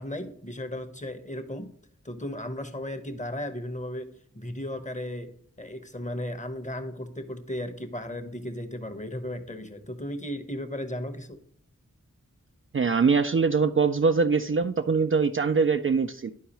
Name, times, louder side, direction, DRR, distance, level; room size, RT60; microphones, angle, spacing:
voice 1, 0.0-1.7 2.0-11.4, left 1 dB, 25° left, 8 dB, 0.9 m, -35 dB
voice 2, 12.7-16.3, right 5 dB, 40° right, 7 dB, 0.4 m, -23 dB
11.5 x 4.6 x 3.0 m, 0.66 s
wide cardioid pair, 50°, 32 cm